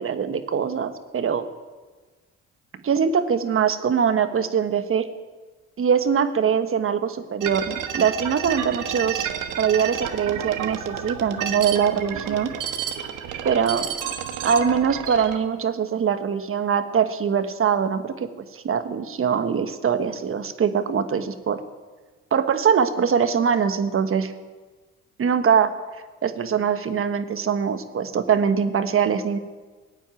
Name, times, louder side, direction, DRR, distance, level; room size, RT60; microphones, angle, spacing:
voice 1, 0.0-1.5 2.8-5.1 5.8-9.3 9.6-12.5 13.4-13.9 14.4-21.6 22.3-24.3 25.2-25.8 26.2-29.4, right 7 dB, 45° right, 10 dB, 1.3 m, -22 dB
sound 1, 7.4-15.4, right 9 dB, 80° right, 1.5 m, -30 dB
17.0 x 9.2 x 9.0 m, 1.3 s
cardioid pair, 90°, 30 cm